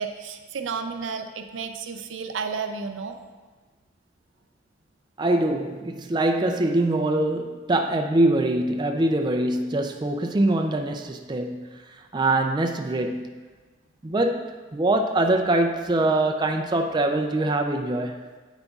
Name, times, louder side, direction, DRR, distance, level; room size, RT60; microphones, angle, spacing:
voice 1, 0.0-3.2, right 5 dB, 90° right, 0.6 m, -32 dB
voice 2, 5.2-13.3 14.0-18.3, right 2 dB, 25° right, 0.4 m, -23 dB
9.0 x 8.0 x 2.4 m
head